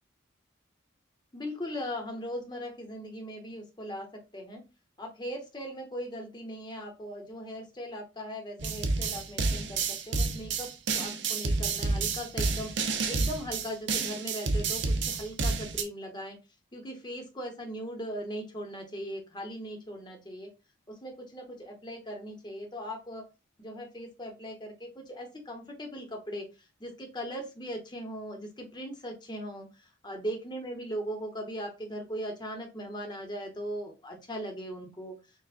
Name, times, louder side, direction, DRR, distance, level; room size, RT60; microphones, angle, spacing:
voice 1, 1.3-4.1 4.3-4.6 5.0-16.4 16.7-20.5 20.9-23.3 23.6-26.5 26.8-29.7 30.0-35.1, equal, 20° left, 3 dB, 1.0 m, -39 dB
sound 1, 8.6-15.8, right 4 dB, 60° right, 0.6 m, -29 dB
6.7 x 2.4 x 2.5 m, 0.28 s
head